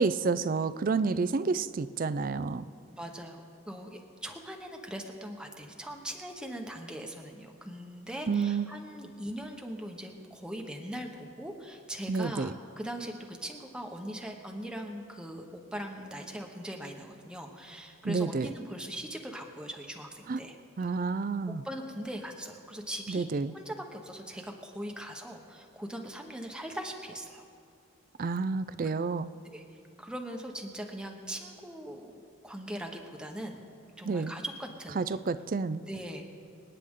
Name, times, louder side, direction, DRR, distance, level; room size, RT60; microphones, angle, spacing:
voice 1, 0.0-2.6 8.3-8.7 12.1-12.5 18.0-18.5 20.3-20.4 20.8-21.6 23.1-23.5 28.2-29.3 34.0-34.3 35.0-35.8, right 4 dB, 40° right, 14 dB, 0.4 m, -29 dB
voice 2, 2.9-20.6 21.6-23.3 23.5-27.4 28.8-28.9 29.4-29.6 30.0-32.1 32.4-33.6 34.0-35.0 35.9-36.2, equal, 5° right, 2 dB, 0.9 m, -40 dB
26.5 x 9.2 x 3.7 m, 2.4 s
head